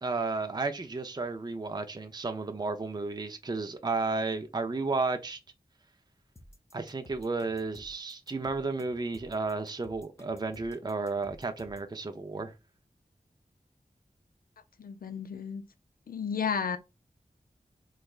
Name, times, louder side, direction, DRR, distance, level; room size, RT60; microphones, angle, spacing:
voice 1, 0.0-5.4 6.7-12.5, right 3 dB, 25° right, 0.5 m, -33 dB
sound 1, 6.4-11.9, left 1 dB, 20° left, 0.8 m, -54 dB
voice 2, 14.8-15.6 16.1-16.8, left 6 dB, 70° left, 0.4 m, -32 dB
3.3 x 3.2 x 2.3 m
wide cardioid pair, 55°, 15 cm